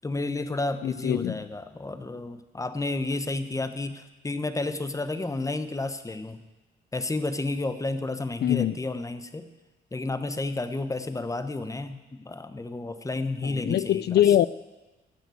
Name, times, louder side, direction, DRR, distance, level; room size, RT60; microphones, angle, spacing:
voice 1, 0.0-6.4 6.9-9.5 9.9-14.2, left 2 dB, 15° left, 10 dB, 1.0 m, -31 dB
voice 2, 0.8-1.4 8.4-8.8 13.4-14.5, left 11 dB, 55° left, 18 dB, 0.4 m, -23 dB
13.0 x 8.1 x 7.8 m, 1.2 s
cardioid pair, 90°, 20 cm